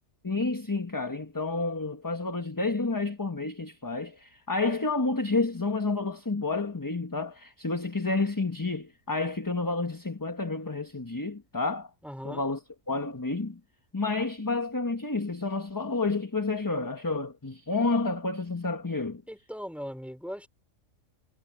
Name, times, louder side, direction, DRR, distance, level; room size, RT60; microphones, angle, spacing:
voice 1, 0.2-11.9 12.2-12.6 12.9-13.6 13.9-19.2, left 3 dB, 15° left, 1.1 m, -30 dB
voice 2, 12.0-12.4 19.3-20.5, equal, ahead, 5.3 m, -39 dB
omnidirectional pair, 1.3 m